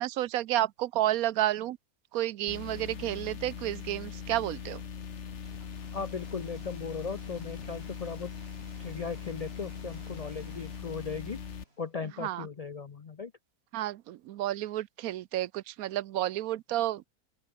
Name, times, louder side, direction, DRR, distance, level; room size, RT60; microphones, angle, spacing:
voice 1, 0.0-1.8 2.1-4.8 12.2-12.5 13.7-17.0, right 14 dB, 75° right, 1.0 m, -31 dB
sound 1, 2.5-11.6, left 7 dB, 50° left, 1.4 m, -41 dB
sound 2, 5.3-12.0, right 1 dB, 40° right, 7.2 m, -57 dB
voice 2, 5.9-8.3 8.8-11.4 11.8-13.3, left 5 dB, 80° left, 0.3 m, -37 dB
open air
omnidirectional pair, 1.6 m